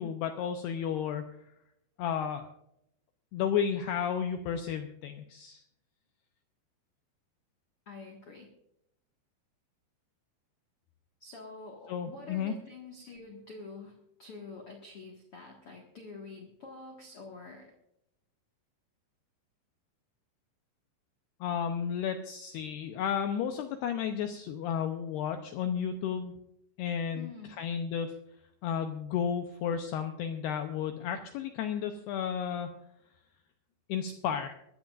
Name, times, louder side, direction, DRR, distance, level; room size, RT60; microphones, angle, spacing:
voice 1, 0.0-1.4 2.0-2.5 3.3-5.6 11.9-12.5 21.4-26.3 26.8-27.3 27.6-28.1 28.6-32.7 33.9-34.5, left 8 dB, 85° left, 6 dB, 2.3 m, -32 dB
voice 2, 7.8-8.5 11.2-17.7 27.1-27.6, left 3 dB, 70° left, 1 dB, 1.3 m, -47 dB
23.0 x 13.0 x 2.5 m, 0.80 s
omnidirectional pair, 5.6 m